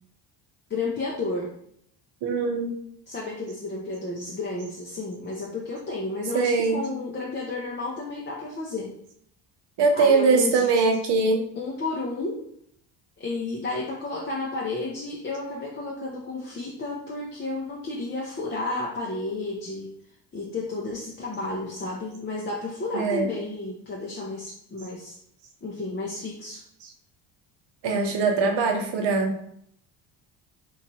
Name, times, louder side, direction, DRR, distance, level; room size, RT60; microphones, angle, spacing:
voice 1, 0.7-1.5 3.1-8.9 9.9-10.8 11.5-12.4 13.2-19.9 20.3-25.2 25.6-26.6, left 3 dB, 25° left, -3 dB, 0.5 m, -32 dB
voice 2, 2.2-2.7 6.3-6.8 9.8-11.4 22.9-23.3 27.8-29.3, right 4 dB, 55° right, 4 dB, 0.7 m, -22 dB
3.1 x 2.4 x 2.7 m, 0.69 s
supercardioid pair, 70°, 49 cm